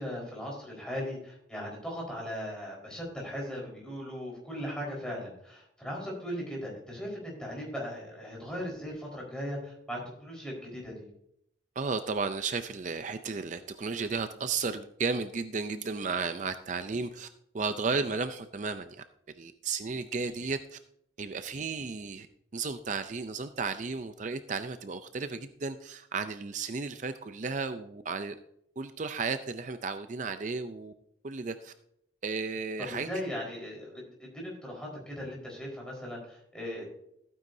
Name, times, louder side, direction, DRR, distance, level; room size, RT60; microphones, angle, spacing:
voice 1, 0.0-11.1 32.9-36.8, equal, 5° left, -3 dB, 4.5 m, -38 dB
voice 2, 11.8-17.3 17.5-19.0 19.4-20.8 21.2-22.3 22.5-28.4 28.8-30.9 31.2-31.7 32.2-33.1, right 4 dB, 40° right, 10 dB, 0.5 m, -34 dB
15.0 x 9.3 x 2.7 m, 0.73 s
head